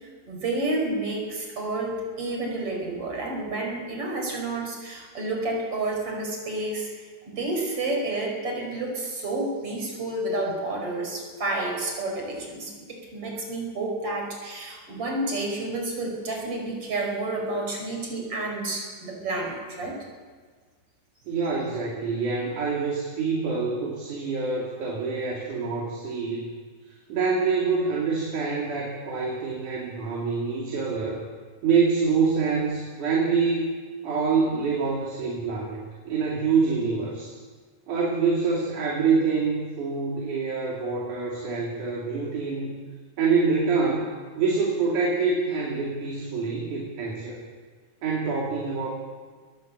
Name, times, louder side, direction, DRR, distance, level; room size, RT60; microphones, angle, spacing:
voice 1, 0.0-6.9 7.3-20.0, right 2 dB, 45° right, 1 dB, 5.8 m, -30 dB
voice 2, 21.3-26.5 27.1-31.2 31.6-33.7 34.0-37.3 37.9-42.8 43.2-44.1 44.4-47.4 48.0-48.9, right 4 dB, 70° right, -3 dB, 4.2 m, -26 dB
21.0 x 16.0 x 7.9 m, 1.5 s
omnidirectional pair, 3.6 m